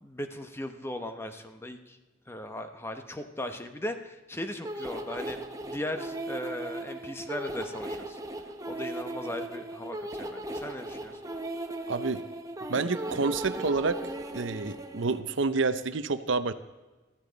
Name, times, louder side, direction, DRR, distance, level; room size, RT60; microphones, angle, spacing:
voice 1, 0.0-2.0 2.3-8.2 8.7-11.2, left 1 dB, 10° left, 7 dB, 0.8 m, -38 dB
sound 1, 4.6-15.2, right 1 dB, 15° right, 0.8 m, -37 dB
voice 2, 11.9-12.2 12.7-14.0 14.3-16.5, right 3 dB, 70° right, 12 dB, 0.7 m, -28 dB
15.0 x 13.5 x 4.0 m, 1.2 s
head